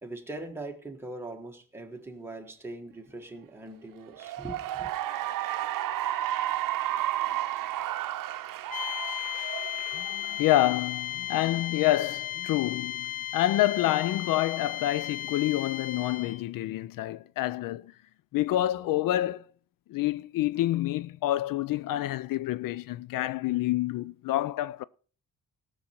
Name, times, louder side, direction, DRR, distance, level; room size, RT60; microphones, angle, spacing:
voice 1, 0.0-4.9, right 2 dB, 5° right, 1.3 m, -41 dB
Cheering / Applause, 4.1-10.8, right 13 dB, 80° right, 0.6 m, -32 dB
sound 1, 8.7-16.4, left 12 dB, 25° left, 0.5 m, -35 dB
voice 2, 9.9-17.9 18.3-19.4 19.9-24.8, left 15 dB, 85° left, 0.5 m, -28 dB
18.5 x 6.6 x 4.4 m
wide cardioid pair, 180°, 32 cm